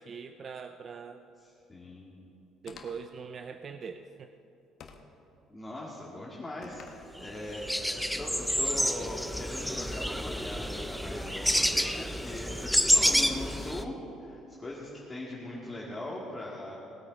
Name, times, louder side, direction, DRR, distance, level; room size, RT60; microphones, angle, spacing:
voice 1, 0.0-1.2 2.6-4.3, right 6 dB, 45° right, 8 dB, 0.5 m, -42 dB
voice 2, 1.4-2.2 5.5-16.8, left 1 dB, 20° left, -5 dB, 2.0 m, -40 dB
sound 1, 2.7-3.2 4.8-5.2 6.6-7.1, left 6 dB, 55° left, 1.2 m, -49 dB
sound 2, 7.2-7.3 7.5-13.8, equal, ahead, 0.6 m, -29 dB
19.0 x 8.6 x 5.2 m, 2.9 s
cardioid pair, 100°, 0 cm